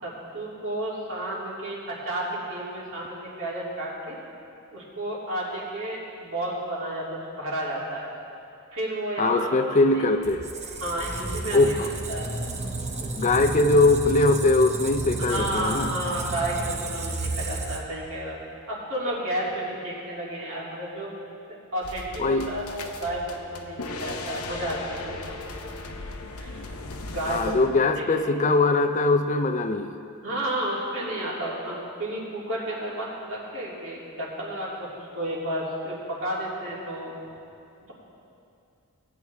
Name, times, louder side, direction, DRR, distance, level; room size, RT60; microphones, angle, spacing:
voice 1, 0.0-4.2 4.7-8.1 8.7-10.0 10.8-12.3 13.0-13.4 15.2-18.4 18.7-21.1 21.7-25.0 25.3-25.5 26.4-26.6 27.1-27.5 28.0-28.4 30.2-37.1, right 1 dB, 65° right, -6 dB, 2.9 m, -32 dB
voice 2, 9.2-10.5 11.5-11.9 13.1-16.0 22.2-22.5 27.3-30.0, left 2 dB, 35° left, 8 dB, 0.4 m, -21 dB
Squeak, 10.2-18.1, right 2 dB, 30° right, 0.9 m, -32 dB
sound 1, 21.8-27.7, left 3 dB, 85° left, 0.9 m, -37 dB
18.5 x 8.9 x 3.5 m, 2.5 s
head